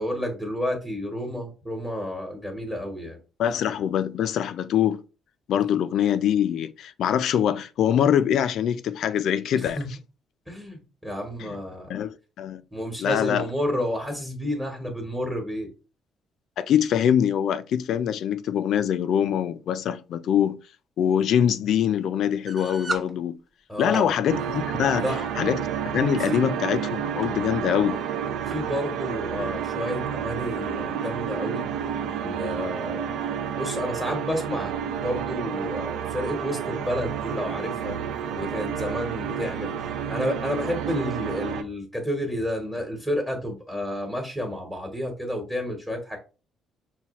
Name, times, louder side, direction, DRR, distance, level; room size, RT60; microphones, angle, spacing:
voice 1, 0.0-3.2 9.5-9.9 10.5-12.0 12.7-15.7 23.7-24.1 24.9-25.2 26.2-26.4 28.5-31.7 32.2-33.1 33.5-38.0 38.3-39.7 40.1-46.2, equal, 5° right, 1.1 m, -30 dB
voice 2, 3.4-5.0 5.5-9.8 11.4-11.6 11.9-12.6 13.0-13.5 16.6-20.6 21.0-23.4 23.8-25.0 25.4-25.6 25.9-28.0, left 9 dB, 70° left, 0.3 m, -24 dB
sound 1, 22.5-23.1 23.7-24.1 25.1-25.3 26.0-26.4 27.2-27.3 27.6-27.7 28.5-28.7, right 2 dB, 25° right, 0.5 m, -34 dB
sound 2, 24.3-41.6, right 8 dB, 85° right, 0.4 m, -30 dB
5.6 x 2.3 x 3.0 m
cardioid pair, 110°, 0 cm